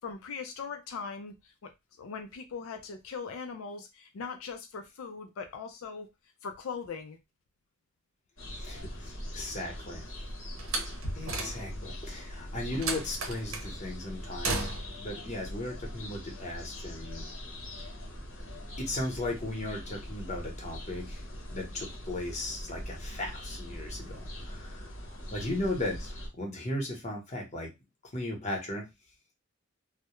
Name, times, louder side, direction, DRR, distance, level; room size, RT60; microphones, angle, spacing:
voice 1, 0.0-1.7 2.0-6.1 6.4-7.2 9.4-9.6, left 5 dB, 85° left, 0.4 m, -40 dB
sound 1, 8.4-26.3, equal, 70° left, 0.8 m, -41 dB
voice 2, 8.5-10.0 11.1-14.7 15.0-17.3 18.8-21.2 21.5-27.7 28.1-28.8, left 1 dB, 35° left, 0.8 m, -36 dB
Slam, 10.6-11.9 12.8-13.7 14.4-15.1, right 3 dB, 85° right, 0.7 m, -34 dB
2.2 x 2.0 x 2.9 m
head